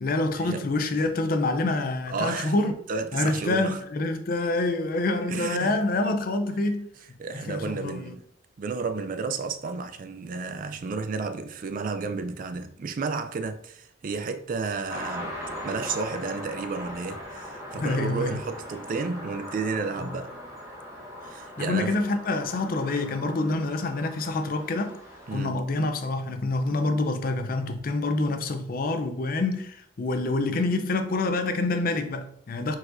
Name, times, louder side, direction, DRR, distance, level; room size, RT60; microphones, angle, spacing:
voice 1, 0.0-2.7 3.1-8.2 17.7-18.4 20.0-20.2 21.6-25.0 25.3-32.8, left 2 dB, 50° left, 0.5 m, -27 dB
voice 2, 2.1-2.5 2.9-3.8 5.3-5.8 7.2-8.3 8.6-20.3 21.2-21.9 25.3-25.6, right 4 dB, 45° right, 0.4 m, -32 dB
sound 1, 14.9-25.4, left 1 dB, 15° right, 1.1 m, -40 dB
4.6 x 4.1 x 2.5 m
head